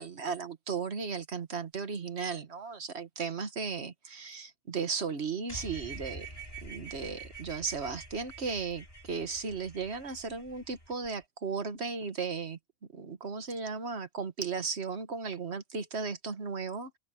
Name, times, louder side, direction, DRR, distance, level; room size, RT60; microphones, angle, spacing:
voice 1, 0.0-6.3 6.6-12.6 12.9-17.0, right 5 dB, 80° right, 1.8 m, -35 dB
sound 1, 5.5-11.1, right 3 dB, 35° left, 7.5 m, -46 dB
open air
omnidirectional pair, 1.1 m